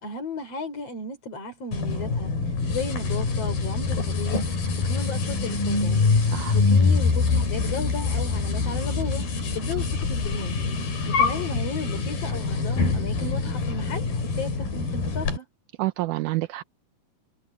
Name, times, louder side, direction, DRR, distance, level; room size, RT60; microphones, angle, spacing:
voice 1, 0.0-2.3 2.7-4.4 4.8-6.1 6.5-9.2 9.5-10.6 11.1-15.5, left 3 dB, 40° left, 5.5 m, -34 dB
sound 1, 1.7-15.4, left 4 dB, 75° left, 6.2 m, -25 dB
voice 2, 6.2-6.6 15.8-16.6, right 18 dB, 75° right, 1.9 m, -28 dB
omnidirectional pair, 4.2 m